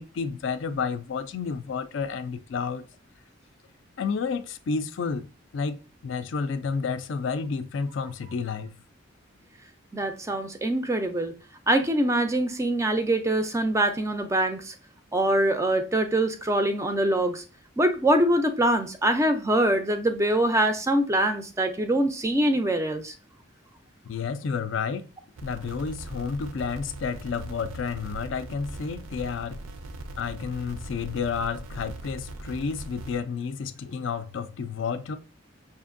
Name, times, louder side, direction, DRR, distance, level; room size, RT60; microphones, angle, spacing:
voice 1, 0.0-2.8 4.0-5.3 5.5-8.8 24.0-25.0 25.4-29.6 30.2-35.2, left 5 dB, 65° left, 0.4 m, -31 dB
voice 2, 9.9-11.3 11.7-14.7 15.1-17.4 17.8-23.1, right 1 dB, 15° right, 0.3 m, -24 dB
sound 1, 25.4-33.2, right 2 dB, 90° right, 0.5 m, -40 dB
5.5 x 2.5 x 2.5 m
head